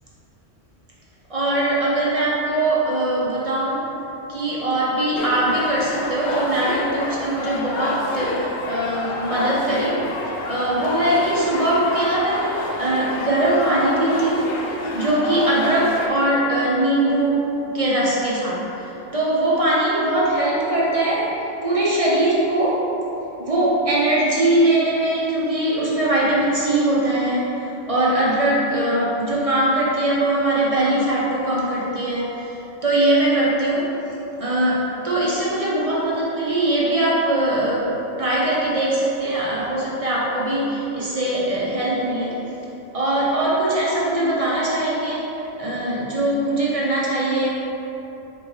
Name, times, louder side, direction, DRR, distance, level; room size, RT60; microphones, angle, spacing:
voice 1, 1.3-3.9 4.3-10.0 10.5-14.5 14.9-17.5 17.7-22.9 23.4-33.9 34.4-42.4 42.9-47.5, right 1 dB, 35° right, -6 dB, 0.6 m, -21 dB
sound 1, 5.2-16.1, left 2 dB, 70° left, 0.8 m, -28 dB
4.2 x 2.7 x 4.7 m, 3.0 s
omnidirectional pair, 1.3 m